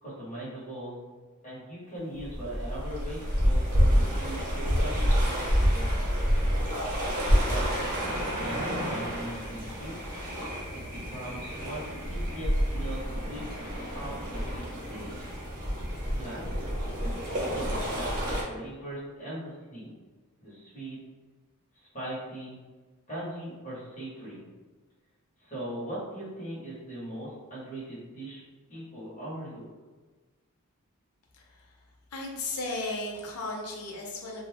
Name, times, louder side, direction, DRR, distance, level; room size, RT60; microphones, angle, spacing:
voice 1, 0.0-1.0 1.4-6.1 7.5-9.9 10.7-13.4 13.9-15.2 16.1-16.6 17.4-19.9 20.4-21.0 21.7-22.6 23.1-24.5 25.4-28.4 28.7-29.6, right 1 dB, 35° left, -9 dB, 1.2 m, -40 dB
sound 1, 2.2-18.4, equal, 40° right, 0.8 m, -28 dB
voice 2, 31.3-31.7 32.1-34.5, left 2 dB, 85° left, 0 dB, 0.6 m, -35 dB
2.5 x 2.3 x 3.3 m, 1.3 s
head